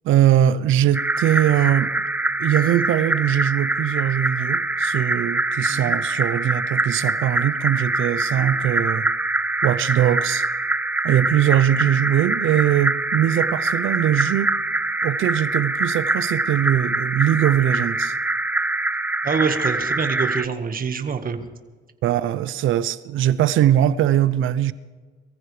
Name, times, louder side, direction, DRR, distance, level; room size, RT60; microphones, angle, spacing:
voice 1, 0.0-1.9 2.4-9.1 9.6-10.5 11.0-14.5 15.0-18.1 22.0-24.7, right 11 dB, 80° right, 0.7 m, -21 dB
sound 1, 0.9-20.5, right 2 dB, 10° right, 0.4 m, -24 dB
voice 2, 19.2-21.5, right 5 dB, 45° right, 1.7 m, -25 dB
23.0 x 15.0 x 3.4 m
cardioid pair, 90°, 20 cm